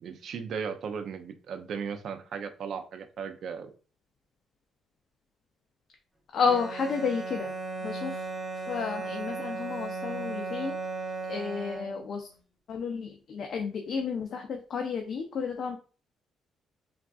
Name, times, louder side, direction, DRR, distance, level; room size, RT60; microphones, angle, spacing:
voice 1, 0.0-3.7, right 6 dB, 65° right, 8 dB, 0.4 m, -36 dB
voice 2, 6.3-7.5 7.8-8.2 8.7-10.8 11.3-12.3 12.7-15.8, left 5 dB, 60° left, 4 dB, 0.4 m, -31 dB
Bowed string instrument, 6.4-12.2, right 3 dB, 10° right, 0.8 m, -36 dB
3.4 x 2.3 x 2.3 m, 0.37 s
cardioid pair, 90°, 0 cm